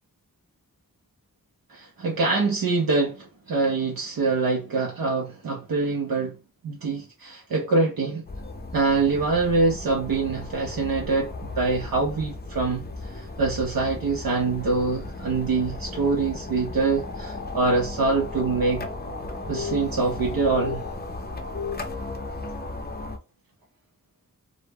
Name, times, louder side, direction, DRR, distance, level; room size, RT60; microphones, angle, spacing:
voice 1, 1.7-6.4 6.6-8.2 8.7-18.8 19.5-20.8, right 3 dB, 75° right, 0.6 m, -25 dB
sound 1, 8.3-23.2, left 3 dB, 30° left, 0.5 m, -35 dB
2.0 x 2.0 x 3.3 m
wide cardioid pair, 50°, 35 cm